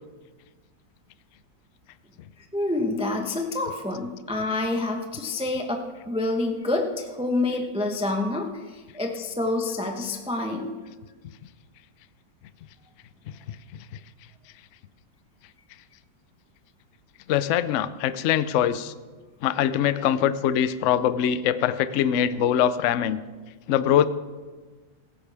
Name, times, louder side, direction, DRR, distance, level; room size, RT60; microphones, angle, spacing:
voice 1, 2.5-10.7, left 2 dB, 5° right, 3 dB, 0.6 m, -27 dB
voice 2, 17.3-18.9 19.4-23.2 23.7-24.1, left 10 dB, 85° left, 14 dB, 0.6 m, -23 dB
16.5 x 14.5 x 3.5 m, 1.4 s
omnidirectional pair, 2.0 m